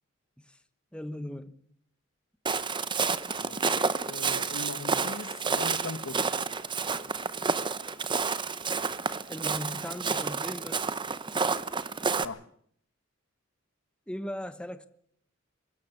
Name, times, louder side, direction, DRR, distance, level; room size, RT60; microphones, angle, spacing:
voice 1, 0.9-1.6 9.3-10.9 14.1-14.9, left 1 dB, 5° left, 1.1 m, -38 dB
Walk footsteps, 2.5-12.3, right 5 dB, 25° right, 0.9 m, -30 dB
voice 2, 3.4-3.7 4.1-6.2 12.2-12.4, left 3 dB, 90° left, 1.3 m, -39 dB
24.5 x 13.5 x 8.3 m
head